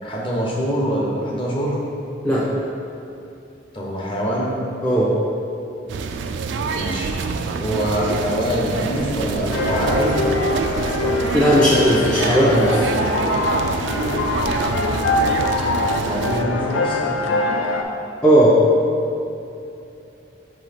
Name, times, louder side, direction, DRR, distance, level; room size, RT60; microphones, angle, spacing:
voice 1, 0.0-1.8 3.7-4.5 6.7-7.1 7.6-10.2 16.0-17.0, equal, 25° left, -3 dB, 0.9 m, -24 dB
sound 1, 5.9-16.4, right 4 dB, 70° right, 0.3 m, -26 dB
sound 2, 9.5-17.8, left 2 dB, 90° left, 0.5 m, -23 dB
voice 2, 11.3-12.9 18.2-18.6, equal, 5° left, -9 dB, 0.5 m, -16 dB
5.6 x 3.1 x 5.6 m, 2.7 s
head